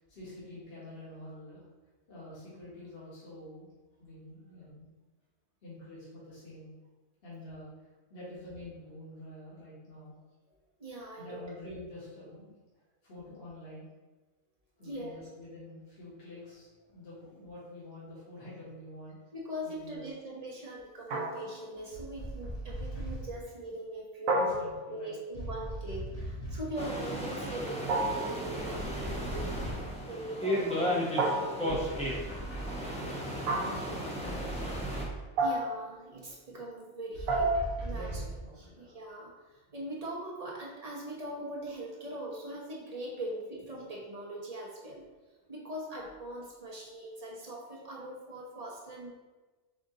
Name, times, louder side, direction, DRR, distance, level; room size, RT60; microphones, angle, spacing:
voice 1, 0.0-1.6 2.1-3.7 4.0-4.9 5.6-6.7 7.2-7.7 8.1-10.1 11.2-12.6 13.0-13.9 14.8-19.1 19.8-20.0 24.3-25.1 33.4-35.2 37.8-38.9, left 1 dB, 45° left, -9 dB, 1.6 m, -47 dB
voice 2, 10.8-11.4 14.8-15.3 19.3-24.5 24.9-29.5 30.1-32.2 35.4-37.5 37.8-38.2 38.6-45.0 45.5-49.1, right 1 dB, 30° right, -4 dB, 0.9 m, -41 dB
sound 1, 21.1-21.7 24.3-25.2 27.9-28.5 31.2-31.9 33.5-34.0 35.4-35.9 37.3-37.9, right 2 dB, 85° right, 1.1 m, -30 dB
sound 2, 21.9-23.4 25.3-26.8 28.5-30.0 31.7-32.9 34.2-35.3 37.1-38.5, right 1 dB, 80° left, 1.5 m, -39 dB
sound 3, 26.8-35.0, equal, 10° left, 0.5 m, -35 dB
4.9 x 2.6 x 3.8 m, 1.2 s
omnidirectional pair, 1.4 m